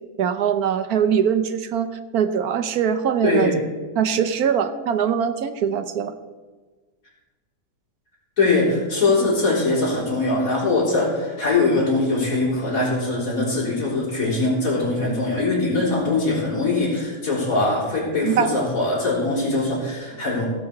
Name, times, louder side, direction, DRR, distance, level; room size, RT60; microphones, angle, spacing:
voice 1, 0.2-3.6 4.0-6.1 18.2-18.5, right 8 dB, 70° right, 10 dB, 1.2 m, -22 dB
voice 2, 3.2-3.6 8.4-20.5, left 3 dB, 55° left, -6 dB, 4.3 m, -22 dB
17.0 x 5.8 x 6.6 m, 1.3 s
omnidirectional pair, 1.7 m